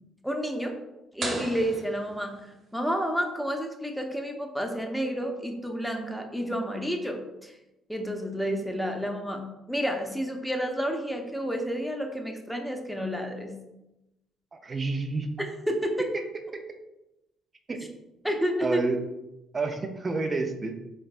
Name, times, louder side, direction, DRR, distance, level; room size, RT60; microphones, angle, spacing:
voice 1, 0.2-0.8 1.1-7.5 7.9-13.6 15.4-16.1 18.2-18.8, equal, ahead, 2 dB, 0.7 m, -30 dB
sound 1, 1.2-2.9, right 2 dB, 50° right, 1.1 m, -36 dB
voice 2, 14.6-15.3 16.1-16.2 16.5-16.6 17.7-17.9 18.6-19.0 19.5-20.7, right 3 dB, 35° right, 4 dB, 0.6 m, -29 dB
4.1 x 3.3 x 2.4 m, 0.94 s
hypercardioid pair, 55°, 0 cm